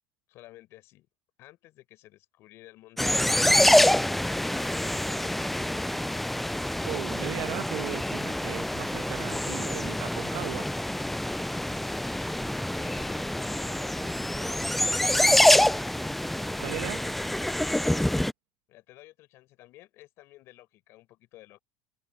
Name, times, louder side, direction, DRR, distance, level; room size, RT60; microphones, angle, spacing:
voice 1, 0.3-1.1 1.4-3.6 12.5-14.7 18.7-21.6, left 17 dB, 50° left, 5.9 m, -53 dB
sound 1, 3.0-18.3, left 1 dB, 5° left, 0.3 m, -26 dB
voice 2, 6.9-10.7 14.8-15.0 15.3-15.5 16.6-17.2, right 21 dB, 65° right, 1.9 m, -37 dB
supercardioid pair, 130°, 5 cm